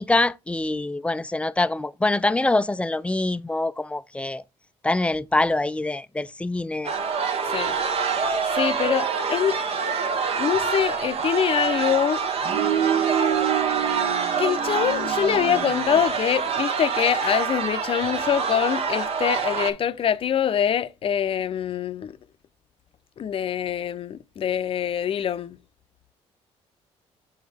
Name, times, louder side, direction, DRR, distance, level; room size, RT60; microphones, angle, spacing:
voice 1, 0.0-4.4 4.8-6.9, left 2 dB, 10° left, 0.4 m, -24 dB
sound 1, 6.8-19.7, right 6 dB, 55° right, 1.1 m, -25 dB
voice 2, 8.5-9.6 10.4-12.2 14.4-22.1 23.2-25.6, left 9 dB, 50° left, 0.6 m, -24 dB
7.5 x 4.3 x 3.4 m
cardioid pair, 90°, 12 cm